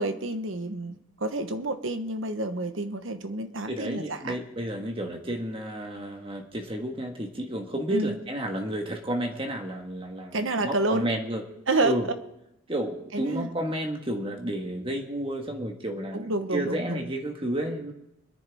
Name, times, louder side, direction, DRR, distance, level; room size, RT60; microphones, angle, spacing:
voice 1, 0.0-4.4 7.9-8.1 10.3-11.1 11.7-11.9 13.1-13.5 16.1-17.0, right 2 dB, 70° right, 8 dB, 1.1 m, -29 dB
voice 2, 3.7-11.4 11.8-12.1 12.7-17.9, right 1 dB, 25° right, 3 dB, 1.5 m, -31 dB
24.0 x 10.5 x 3.6 m, 0.87 s
head